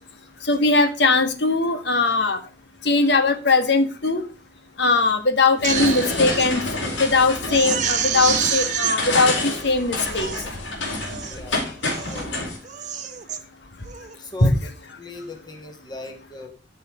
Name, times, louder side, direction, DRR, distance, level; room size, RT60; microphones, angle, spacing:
voice 1, 0.5-2.4 2.8-4.2 4.8-6.6 7.0-10.3 14.4-14.5, left 3 dB, 65° left, 8 dB, 1.6 m, -20 dB
Crying sobbing, 5.4-6.5 6.9-7.0 7.5-9.0 9.6-9.7 10.1-10.5 11.0-11.4 11.8-12.3 12.6-13.4 13.9-14.1, right 8 dB, 40° right, 1.3 m, -27 dB
sound 1, 5.6-12.6, left 2 dB, 85° left, 4.0 m, -28 dB
voice 2, 11.2-11.6 12.1-12.3 14.2-14.7 15.0-16.5, left 2 dB, 25° left, 4 dB, 2.2 m, -38 dB
13.5 x 5.9 x 5.0 m, 0.34 s
head